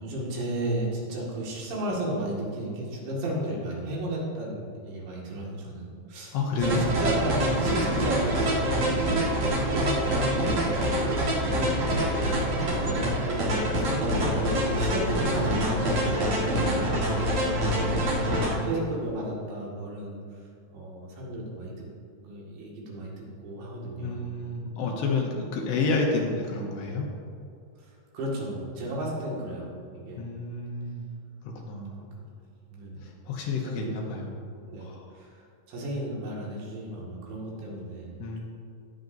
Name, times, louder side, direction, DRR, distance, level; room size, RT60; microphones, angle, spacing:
voice 1, 0.0-11.2 12.0-12.5 12.8-18.4 18.6-20.2 20.7-21.9 22.2-23.1 23.4-24.2 27.8-30.2 32.7-33.1 33.6-34.1 34.7-34.9 35.2-38.1, right 1 dB, 70° right, -4 dB, 4.2 m, -34 dB
voice 2, 6.3-7.5 9.7-10.0 11.4-12.2 18.1-18.8 24.0-27.1 30.2-31.1 31.4-32.0 33.0-34.3 34.8-35.1 38.2-38.4, left 3 dB, 75° left, -1 dB, 2.9 m, -30 dB
sound 1, 6.6-18.6, equal, 55° right, 1.8 m, -26 dB
20.0 x 7.3 x 2.7 m, 2.4 s
omnidirectional pair, 5.5 m